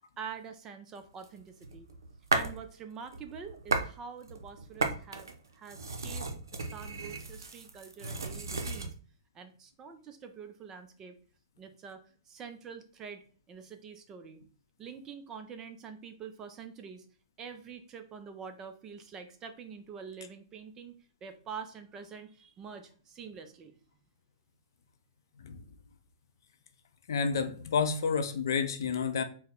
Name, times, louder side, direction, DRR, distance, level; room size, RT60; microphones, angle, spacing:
voice 1, 0.2-1.9 2.3-8.9 9.3-11.2 11.6-14.4 14.8-17.1 17.4-23.8, right 6 dB, 25° right, 0.5 m, -46 dB
sound 1, 1.2-2.6 3.0-3.9 4.2-8.9, right 3 dB, 85° right, 0.6 m, -35 dB
voice 2, 27.1-29.2, left 6 dB, 70° left, 0.6 m, -29 dB
4.1 x 2.2 x 3.6 m
hypercardioid pair, 125°, 2 cm